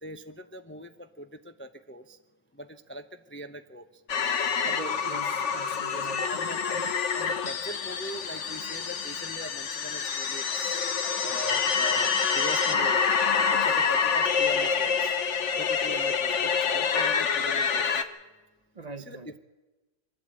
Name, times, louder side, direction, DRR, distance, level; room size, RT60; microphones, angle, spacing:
voice 1, 0.0-2.2 2.5-3.8 5.9-10.7 11.2-13.1 13.6-15.2 15.6-18.0 19.0-19.4, right 1 dB, 10° left, 8 dB, 0.6 m, -42 dB
sound 1, 4.1-18.0, left 6 dB, 65° left, 1.4 m, -27 dB
voice 2, 4.6-6.3 18.7-19.3, right 3 dB, 35° right, 10 dB, 1.0 m, -41 dB
24.0 x 12.0 x 8.9 m, 1.2 s
omnidirectional pair, 1.4 m